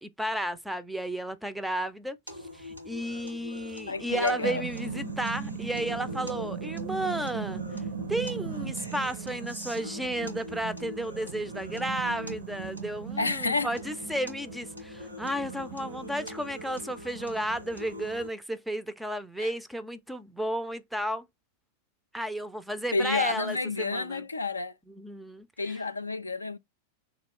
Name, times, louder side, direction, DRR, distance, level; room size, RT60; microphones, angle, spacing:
voice 1, 0.0-2.2 2.5-7.6 8.1-21.3 22.1-24.2 24.9-25.8, right 1 dB, 5° right, 0.4 m, -33 dB
sound 1, 2.3-18.3, left 2 dB, 90° right, 1.7 m, -44 dB
voice 2, 3.9-4.6 13.2-13.7 19.4-19.5 22.9-24.7 25.6-26.6, left 3 dB, 80° left, 0.3 m, -30 dB
sound 2, 3.9-18.2, right 6 dB, 60° right, 0.6 m, -39 dB
3.0 x 2.3 x 3.5 m
figure-of-eight pair, 90°, 0 cm